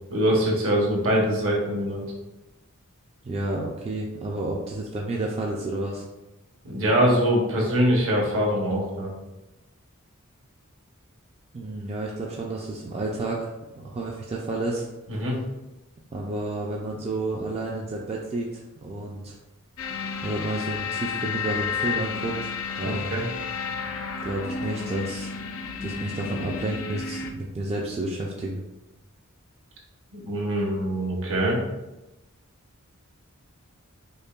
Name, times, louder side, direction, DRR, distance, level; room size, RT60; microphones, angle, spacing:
voice 1, 0.1-2.0 6.6-9.1 15.1-15.4 22.8-23.2 30.1-31.6, equal, 65° right, -2 dB, 0.9 m, -23 dB
voice 2, 3.2-6.0 11.5-13.5 13.8-14.8 16.1-19.3 20.2-23.2 24.2-25.3 25.8-28.6, right 2 dB, 30° right, -2 dB, 0.4 m, -31 dB
sound 1, 19.8-27.3, left 5 dB, 65° left, 0.4 m, -32 dB
5.3 x 2.2 x 2.3 m, 1.0 s
head